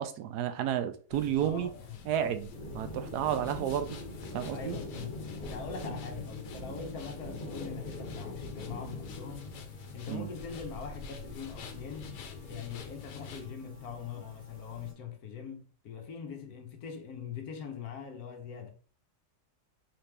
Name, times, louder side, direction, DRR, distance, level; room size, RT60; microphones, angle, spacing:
voice 1, 0.0-1.7 2.1-4.0 4.3-4.8 10.1-10.3, right 10 dB, 80° right, 1.1 m, -31 dB
sound 1, 1.1-13.5, left 5 dB, 90° left, 1.3 m, -47 dB
voice 2, 1.4-2.1 4.5-9.5 9.9-12.1 12.5-18.7, left 6 dB, 70° left, 1.1 m, -42 dB
sound 2, 2.5-14.9, left 1 dB, 30° left, 1.6 m, -44 dB
4.1 x 3.3 x 3.3 m
omnidirectional pair, 1.8 m